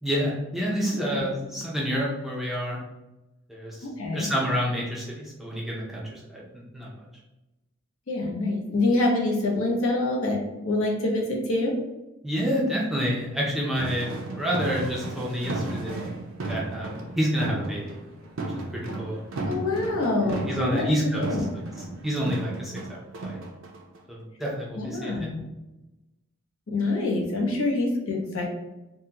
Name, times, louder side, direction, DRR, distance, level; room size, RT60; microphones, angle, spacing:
voice 1, 0.0-2.8 3.5-3.8 4.1-6.9 12.2-14.1 14.4-16.2 16.5-18.0 18.7-19.2 20.2-21.3 22.0-23.4 24.1-25.3, equal, ahead, -4 dB, 0.4 m, -28 dB
voice 2, 3.8-4.3 8.1-11.8 19.5-20.9 21.2-21.5 24.8-25.4 26.7-28.4, left 2 dB, 75° left, -2 dB, 0.9 m, -26 dB
sound 1, 13.7-24.2, right 2 dB, 65° right, 0.5 m, -34 dB
3.6 x 2.1 x 2.8 m, 1.0 s
head